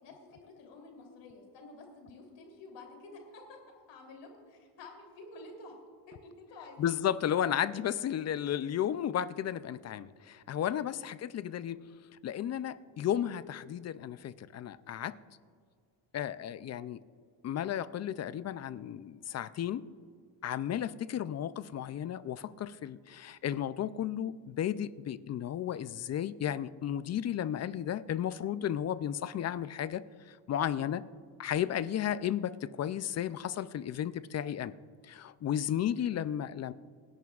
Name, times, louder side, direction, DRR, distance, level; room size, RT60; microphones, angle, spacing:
voice 1, 0.0-3.6 3.9-5.8 6.1-6.9 35.9-36.1, left 2 dB, 85° left, 1 dB, 3.3 m, -50 dB
voice 2, 6.8-11.8 12.2-15.2 16.1-17.0 17.4-19.8 20.4-31.0 31.4-34.7 35.0-36.7, left 10 dB, 40° left, 16 dB, 0.4 m, -33 dB
28.0 x 11.0 x 2.4 m, 2.1 s
cardioid pair, 125°, 41 cm